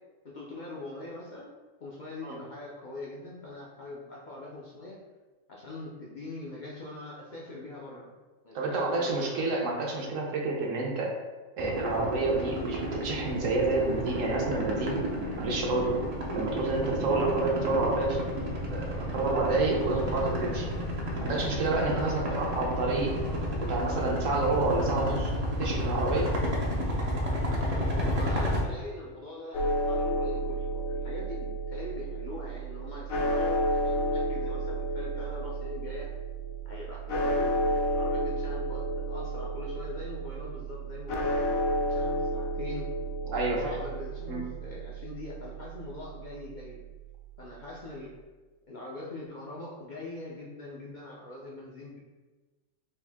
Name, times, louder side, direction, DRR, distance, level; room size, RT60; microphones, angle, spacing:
voice 1, 0.2-5.0 5.5-8.1 8.4-9.4 21.9-22.6 27.9-36.1 36.6-42.9 43.2-46.8 47.4-48.2 48.7-52.0, left 2 dB, 55° left, -4 dB, 0.5 m, -42 dB
voice 2, 8.5-11.1 11.6-15.0 15.4-16.0 16.3-18.2 18.7-20.7 21.2-23.1 23.6-25.3 25.6-26.3 43.3-43.8 44.3-44.4, right 3 dB, 65° right, -1 dB, 1.1 m, -29 dB
sound 1, 11.6-28.6, equal, 45° right, 0.5 m, -31 dB
sound 2, 29.5-47.4, right 1 dB, 75° left, 1.1 m, -32 dB
4.5 x 2.6 x 3.5 m, 1.2 s
omnidirectional pair, 1.5 m